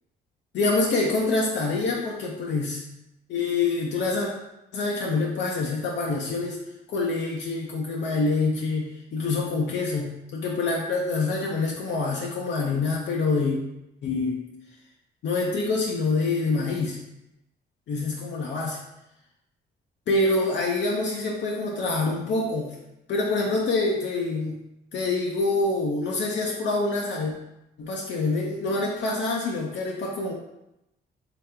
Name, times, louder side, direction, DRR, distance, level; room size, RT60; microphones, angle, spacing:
voice 1, 0.5-2.8 3.3-4.3 4.7-6.6 6.9-13.6 14.0-14.4 15.2-17.0 17.9-18.8 20.1-22.7 23.1-24.6 24.9-27.3 27.8-30.3, left 3 dB, 65° left, -2 dB, 0.6 m, -26 dB
3.2 x 2.9 x 3.6 m, 0.88 s
cardioid pair, 90°, 20 cm